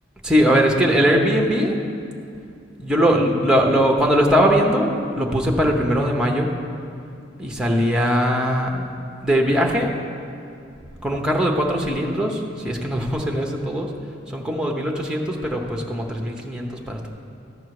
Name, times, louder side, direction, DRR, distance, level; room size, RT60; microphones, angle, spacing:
voice 1, 0.2-1.8 2.8-6.5 7.4-8.8 9.2-9.9 11.0-13.9 14.3-17.1, equal, 5° right, 1 dB, 0.8 m, -20 dB
14.0 x 5.5 x 4.8 m, 2.5 s
head